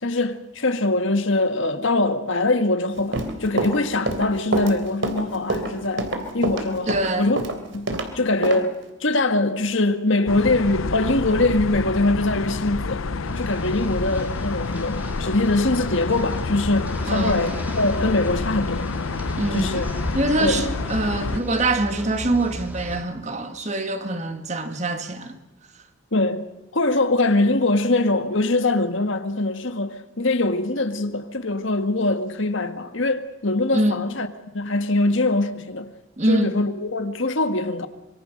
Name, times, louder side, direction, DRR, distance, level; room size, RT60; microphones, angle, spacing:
voice 1, 0.0-6.1 6.3-7.4 7.7-7.9 8.1-13.1 13.4-18.9 19.5-19.9 20.4-20.6 26.1-26.4 26.7-34.3 34.5-35.9 36.3-37.9, left 2 dB, 70° left, 1.7 m, -22 dB
Run, 2.9-8.1 8.4-8.6, right 2 dB, 65° right, 3.3 m, -26 dB
voice 2, 6.9-7.3 17.1-17.4 19.4-19.7 20.1-25.4 33.7-34.0 36.2-36.5, right 2 dB, 35° right, 1.8 m, -24 dB
sound 1, 10.3-21.4, left 4 dB, 85° left, 0.7 m, -28 dB
sound 2, 13.2-23.0, equal, 10° right, 2.4 m, -35 dB
25.5 x 23.5 x 6.5 m
head